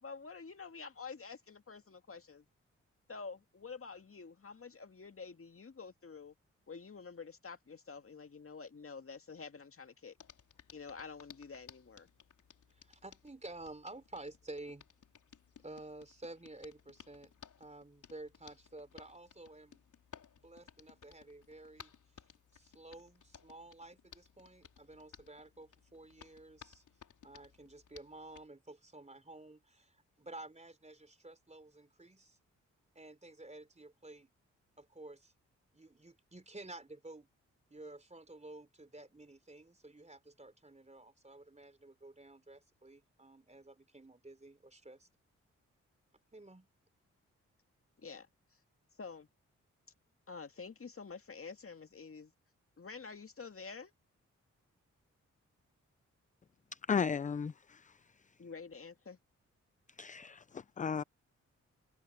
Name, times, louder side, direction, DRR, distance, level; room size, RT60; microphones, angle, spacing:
voice 1, 0.0-2.4 3.1-6.3 6.7-10.2 10.7-12.1 48.0-48.3 49.0-49.3 50.3-52.3 52.8-53.9 58.4-59.2, left 5 dB, 45° left, 2.1 m, -48 dB
Hands, 10.2-28.5, left 7 dB, 70° left, 4.2 m, -59 dB
voice 2, 12.7-14.9 15.6-17.3 17.6-19.8 20.3-21.9 22.5-26.8 27.2-32.4 33.0-34.3 34.8-35.3 35.7-37.3 37.7-45.1 46.3-46.7, right 2 dB, 20° right, 3.7 m, -52 dB
voice 3, 56.7-58.1 60.0-61.0, left 6 dB, 25° left, 0.4 m, -36 dB
open air
supercardioid pair, 45°, 31 cm